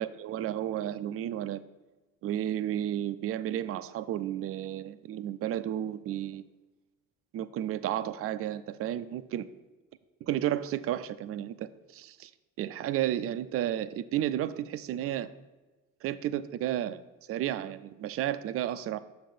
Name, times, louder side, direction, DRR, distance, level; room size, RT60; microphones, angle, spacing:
voice 1, 0.0-1.6 2.2-6.4 7.3-9.5 10.2-12.3 12.6-15.3 16.0-17.0 17.3-19.0, right 12 dB, 35° right, 14 dB, 0.4 m, -32 dB
6.5 x 3.8 x 5.2 m, 1.2 s
figure-of-eight pair, 45°, 40 cm